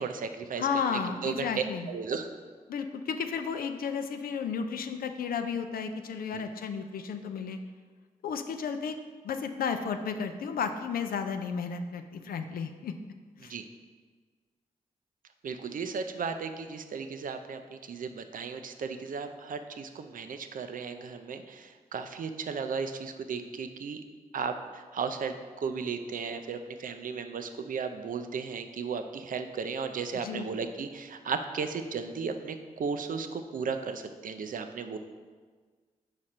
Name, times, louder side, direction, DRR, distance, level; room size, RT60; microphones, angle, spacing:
voice 1, 0.0-1.5 1.9-2.3 6.3-6.4 13.4-13.6 15.4-24.0 24.3-35.0, right 5 dB, 65° right, 8 dB, 0.5 m, -35 dB
voice 2, 0.6-1.9 2.7-7.6 8.2-9.0 9.2-12.9 13.4-13.5 30.1-30.5, left 6 dB, 75° left, 7 dB, 0.4 m, -33 dB
5.0 x 4.7 x 4.3 m, 1.5 s
supercardioid pair, 40°, 15 cm